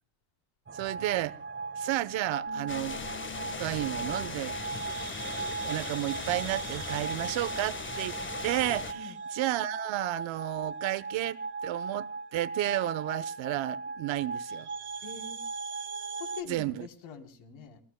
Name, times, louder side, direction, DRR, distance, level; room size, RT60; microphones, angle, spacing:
sound 1, 0.7-16.4, right 4 dB, 25° right, 1.4 m, -38 dB
voice 1, 0.7-1.4 1.8-3.0 3.6-4.6 5.6-8.2 8.4-14.7 16.5-16.9, right 16 dB, 65° right, 1.1 m, -32 dB
Bass guitar, 2.5-8.7, left 22 dB, 85° left, 5.3 m, -53 dB
sound 2, 2.7-8.9, left 4 dB, 25° left, 1.5 m, -39 dB
voice 2, 15.0-15.4 16.1-17.8, left 5 dB, 70° left, 3.9 m, -44 dB
29.5 x 20.5 x 2.2 m
cardioid pair, 130°, 48 cm